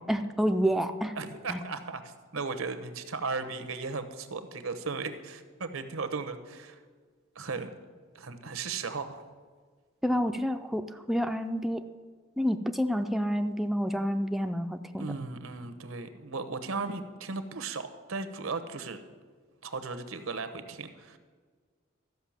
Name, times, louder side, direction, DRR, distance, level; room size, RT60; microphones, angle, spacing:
voice 1, 0.0-1.2 1.5-1.6 10.0-11.8 12.4-15.1, equal, ahead, 6 dB, 0.4 m, -29 dB
voice 2, 1.2-6.8 7.3-7.7 8.1-9.2 15.0-19.0 19.6-21.2, right 4 dB, 85° right, 10 dB, 0.9 m, -36 dB
13.0 x 5.6 x 7.2 m, 1.5 s
head